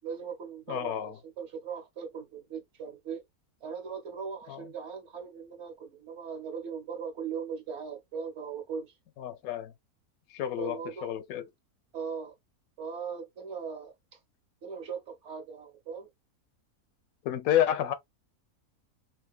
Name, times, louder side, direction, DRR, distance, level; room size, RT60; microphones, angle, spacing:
voice 1, 0.0-3.2 3.6-8.9 10.6-11.1 11.9-12.3 12.8-13.9 14.6-16.1, right 6 dB, 55° right, 1.1 m, -39 dB
voice 2, 0.7-1.2 4.5-4.6 9.2-9.7 10.3-11.4 17.2-17.9, left 11 dB, 75° left, 1.0 m, -30 dB
3.6 x 2.7 x 2.3 m
omnidirectional pair, 1.6 m